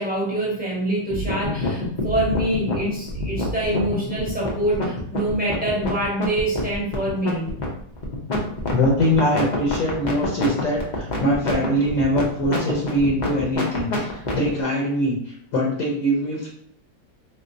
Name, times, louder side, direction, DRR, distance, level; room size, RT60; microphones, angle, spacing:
voice 1, 0.0-7.5, right 1 dB, 5° right, -5 dB, 1.0 m, -25 dB
sound 1, 1.1-14.5, left 2 dB, 40° left, 0.6 m, -27 dB
voice 2, 8.7-16.5, equal, 60° left, -2 dB, 1.1 m, -23 dB
3.6 x 3.2 x 2.6 m, 0.65 s
omnidirectional pair, 1.8 m